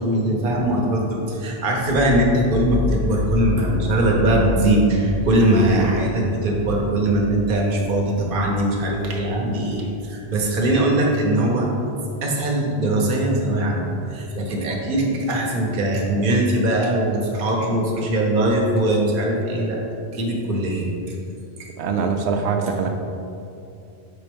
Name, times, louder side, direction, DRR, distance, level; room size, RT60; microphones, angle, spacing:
voice 1, 0.0-11.7 12.2-19.8 20.1-21.2 21.6-21.7, right 1 dB, 55° right, -1 dB, 1.0 m, -21 dB
sound 1, 1.8-10.0, left 3 dB, 55° left, 0.9 m, -30 dB
voice 2, 21.8-22.9, right 5 dB, 90° right, 4 dB, 0.9 m, -23 dB
4.5 x 4.0 x 5.2 m, 2.6 s
omnidirectional pair, 1.1 m